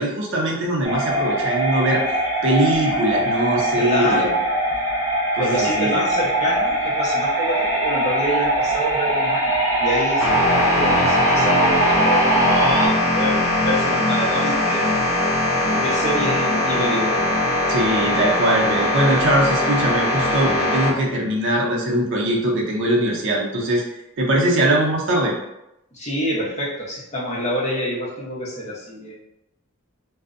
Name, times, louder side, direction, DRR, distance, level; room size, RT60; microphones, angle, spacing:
voice 1, 0.0-2.0 2.4-4.3 5.3-6.0 17.7-23.8 24.2-25.3, right 1 dB, 60° right, -2 dB, 0.5 m, -21 dB
sound 1, 0.8-12.9, right 1 dB, 15° right, 1.0 m, -21 dB
voice 2, 3.8-4.4 5.4-15.0 15.7-17.2 20.2-20.3 25.9-29.2, equal, 35° left, -6 dB, 0.7 m, -27 dB
sound 2, 10.2-20.9, left 1 dB, 70° left, 0.5 m, -21 dB
2.5 x 2.0 x 2.4 m, 0.88 s
head